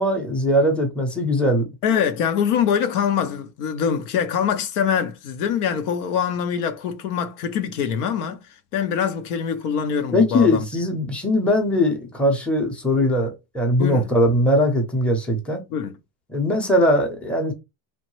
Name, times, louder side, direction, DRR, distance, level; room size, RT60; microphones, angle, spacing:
voice 1, 0.0-1.7 10.1-15.6 16.3-17.5, left 1 dB, ahead, 0.7 m, -20 dB
voice 2, 1.8-8.4 8.7-10.7 13.8-14.1 15.7-16.0, left 7 dB, 70° left, 0.7 m, -24 dB
3.0 x 2.2 x 3.1 m
supercardioid pair, 120°, 47 cm